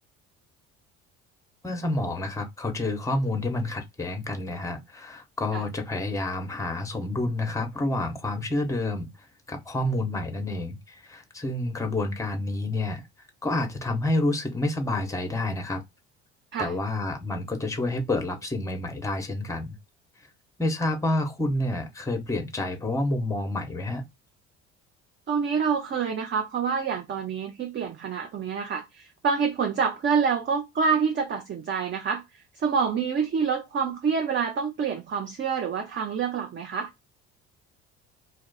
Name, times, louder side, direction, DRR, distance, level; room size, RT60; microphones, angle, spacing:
voice 1, 1.6-9.1 9.5-13.0 13.4-15.8 16.6-19.8 20.6-24.0, left 2 dB, 10° left, 0.9 m, -29 dB
voice 2, 25.3-32.2 32.6-36.9, right 6 dB, 35° right, 0.6 m, -27 dB
2.3 x 2.3 x 3.9 m
hypercardioid pair, 65°, 33 cm